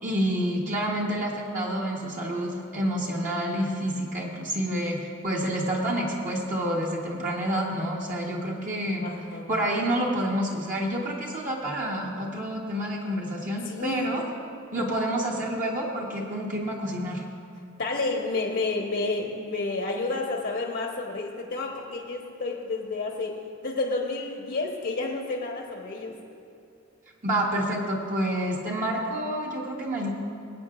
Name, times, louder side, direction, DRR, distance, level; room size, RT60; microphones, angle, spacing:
voice 1, 0.0-9.1 9.5-14.2 14.7-17.2 27.2-30.1, right 1 dB, 40° right, -3 dB, 1.2 m, -28 dB
voice 2, 9.0-9.5 13.7-14.2 14.7-14.9 17.8-26.1, left 3 dB, 60° left, 0 dB, 1.1 m, -30 dB
22.5 x 8.5 x 2.5 m, 2.7 s
head